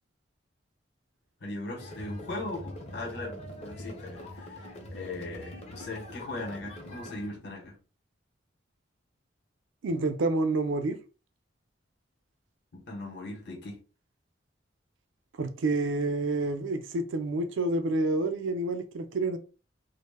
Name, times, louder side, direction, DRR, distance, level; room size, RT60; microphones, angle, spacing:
voice 1, 1.4-7.8 12.7-13.8, left 2 dB, 60° left, 0.8 m, -39 dB
sound 1, 1.8-7.3, left 1 dB, 35° left, 0.6 m, -43 dB
voice 2, 9.8-11.0 15.4-19.4, right 2 dB, 85° right, 0.4 m, -28 dB
2.0 x 2.0 x 3.3 m
head